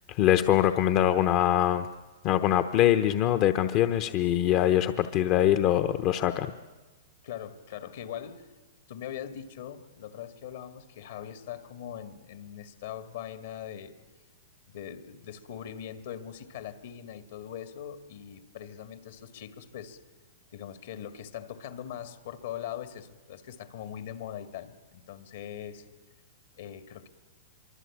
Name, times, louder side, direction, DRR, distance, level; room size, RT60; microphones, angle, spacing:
voice 1, 0.1-1.9 2.2-6.5, left 12 dB, 40° left, 0.9 m, -23 dB
voice 2, 7.2-8.5 8.9-14.0 14.7-20.0 20.5-25.9 26.6-27.1, left 10 dB, 70° left, 2.0 m, -41 dB
25.0 x 24.0 x 8.6 m
hypercardioid pair, 130°, 0 cm